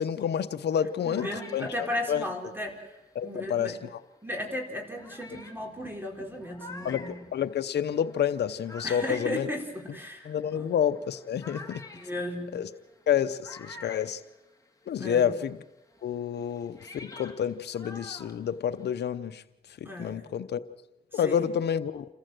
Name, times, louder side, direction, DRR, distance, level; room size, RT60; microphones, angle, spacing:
voice 1, 0.0-2.2 3.1-3.8 6.8-9.5 10.2-11.8 12.5-12.7 13.1-14.2 14.9-15.6 16.0-19.4 19.8-20.6 21.1-22.0, left 9 dB, 90° left, 10 dB, 0.8 m, -29 dB
sound 1, 0.7-3.7 4.4-4.5 5.0-15.0 15.3-19.0, left 2 dB, 20° left, 2.8 m, -49 dB
voice 2, 1.0-2.9 3.2-3.8 4.2-7.1 8.8-10.7 12.0-12.5 15.0-15.4 19.8-20.2 21.1-21.5, left 1 dB, 10° right, 1 dB, 4.7 m, -35 dB
28.0 x 14.5 x 7.7 m, 1.0 s
cardioid pair, 55°, 17 cm